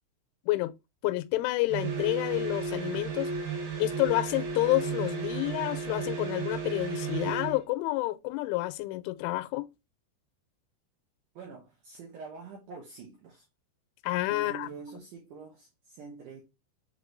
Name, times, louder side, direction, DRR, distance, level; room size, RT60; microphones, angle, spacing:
voice 1, 1.0-3.3 3.8-9.7 14.0-14.7, left 18 dB, 85° left, 2.9 m, -29 dB
sound 1, 1.7-7.6, right 5 dB, 65° right, 3.0 m, -34 dB
voice 2, 11.4-13.5 14.3-16.4, right 4 dB, 85° right, 1.9 m, -45 dB
6.6 x 3.2 x 2.5 m
omnidirectional pair, 5.4 m